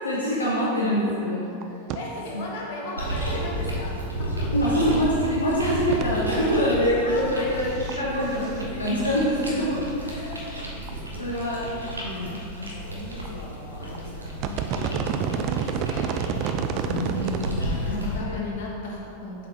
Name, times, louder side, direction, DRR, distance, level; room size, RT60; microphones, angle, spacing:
voice 1, 0.0-1.5 2.3-2.5 4.5-7.7 8.0-10.3 11.2-11.6 11.9-12.4 16.9-18.5, equal, 80° left, -6 dB, 0.9 m, -25 dB
sound 1, 1.1-1.2 1.4-1.6 1.9-2.0 2.3-2.4 4.6-4.7 5.9-6.0 7.6-8.0 8.3-9.1 9.4-9.5 10.3-10.4 10.9-11.0 11.2-11.3 11.7-12.1 13.0-13.3 13.8-14.0 14.3-17.5 17.9-18.0, right 7 dB, 40° right, 0.4 m, -29 dB
voice 2, 1.9-4.8 7.0-7.5 10.0-10.6 11.1-11.6 12.2-15.1 15.3-16.2 17.0-19.5, left 2 dB, 50° left, -3 dB, 1.4 m, -38 dB
sound 2, 3.0-18.2, equal, 80° right, 1.1 m, -33 dB
7.1 x 4.6 x 4.3 m, 2.8 s
figure-of-eight pair, 90°, 0 cm